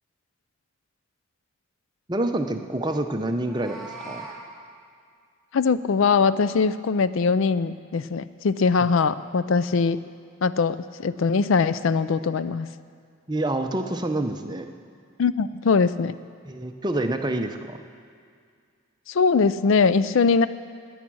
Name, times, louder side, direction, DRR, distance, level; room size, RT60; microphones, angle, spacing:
voice 1, 2.1-4.3 13.3-14.7 16.5-17.8, right 1 dB, 20° right, 5 dB, 0.7 m, -27 dB
Meow, 3.3-4.4, right 3 dB, ahead, 2.0 m, -40 dB
voice 2, 5.5-10.0 10.4-12.7 15.2-16.2 19.1-20.5, left 5 dB, 70° left, 15 dB, 0.4 m, -21 dB
17.0 x 10.0 x 6.2 m, 2.2 s
head